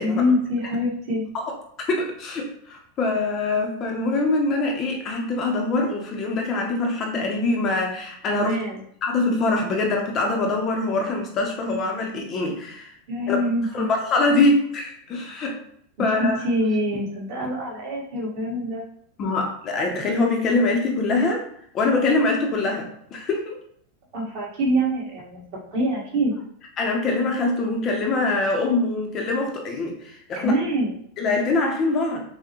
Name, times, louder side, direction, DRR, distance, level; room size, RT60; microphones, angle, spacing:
voice 1, 0.0-1.3 8.3-8.8 13.1-13.9 16.2-18.8 24.1-26.4 30.4-31.0, equal, 45° right, -4 dB, 1.4 m, -25 dB
voice 2, 1.9-8.6 9.0-12.9 13.3-13.4 13.7-15.6 16.0-16.4 19.2-21.4 21.7-23.6 26.8-30.5 31.2-32.2, left 2 dB, 25° left, 1 dB, 0.5 m, -23 dB
5.8 x 2.1 x 2.9 m, 0.65 s
supercardioid pair, 175°, 0 cm